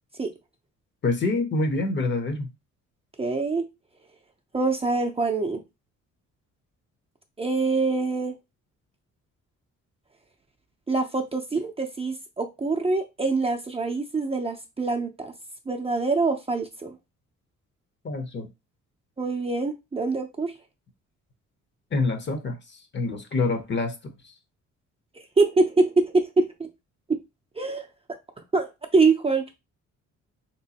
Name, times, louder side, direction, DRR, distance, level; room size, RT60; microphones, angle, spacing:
voice 1, 1.0-2.5 18.0-18.5 21.9-22.6 22.9-24.1, left 3 dB, 40° left, 6 dB, 0.8 m, -26 dB
voice 2, 3.2-3.7 4.5-5.6 7.4-8.3 10.9-15.3 15.7-16.9 19.2-20.5 25.4-26.7 27.6-27.9 28.5-29.5, right 3 dB, 20° right, 2 dB, 0.5 m, -24 dB
3.3 x 3.0 x 2.8 m, 0.24 s
cardioid pair, 90°, 30 cm